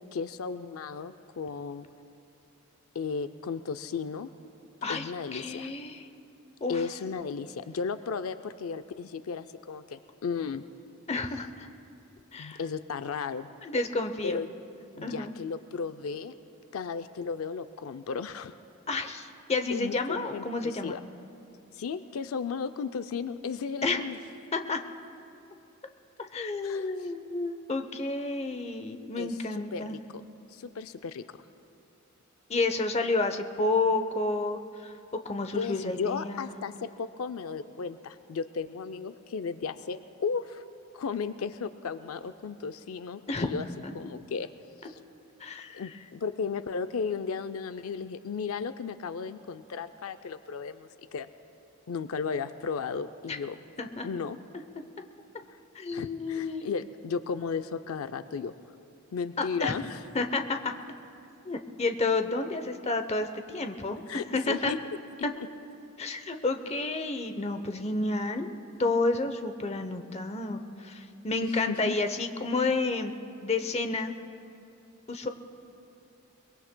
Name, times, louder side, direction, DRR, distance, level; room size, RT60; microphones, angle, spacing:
voice 1, 0.0-1.9 2.9-4.3 4.9-5.7 6.7-10.6 12.4-13.5 14.2-14.5 15.0-16.3 16.7-18.5 19.7-21.0 21.7-24.2 26.6-26.9 29.2-30.2 30.5-31.2 35.5-40.6 40.9-43.7 43.9-44.5 44.8-45.0 45.7-51.3 51.9-53.6 54.0-54.4 55.9-58.5 59.1-60.0 64.1-64.8 71.4-71.9, left 5 dB, 85° left, 11 dB, 0.4 m, -35 dB
voice 2, 4.8-6.0 6.6-6.8 11.1-11.7 12.3-12.6 13.6-14.4 15.0-15.3 18.9-21.0 23.8-24.0 24.5-24.8 26.2-30.0 32.5-34.9 35.2-36.5 43.3-43.5 45.4-45.9 53.3-53.4 53.8-54.1 55.7-56.7 59.4-59.7 60.1-60.7 61.4-64.7 66.0-73.1 73.4-74.1 75.1-75.3, left 3 dB, 30° left, 7 dB, 0.7 m, -30 dB
23.0 x 22.0 x 2.2 m, 2.6 s
head